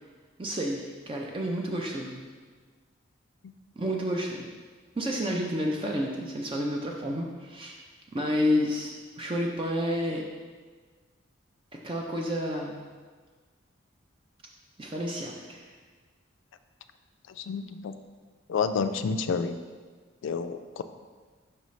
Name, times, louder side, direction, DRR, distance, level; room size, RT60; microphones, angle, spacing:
voice 1, 0.4-2.2 3.8-4.5 5.0-7.8 8.1-10.3 11.8-12.9 14.8-15.7, equal, 25° right, 0 dB, 0.4 m, -30 dB
voice 2, 17.3-18.0 18.5-19.6 20.2-20.8, left 5 dB, 65° left, 9 dB, 0.3 m, -29 dB
5.5 x 5.3 x 3.1 m, 1.5 s
head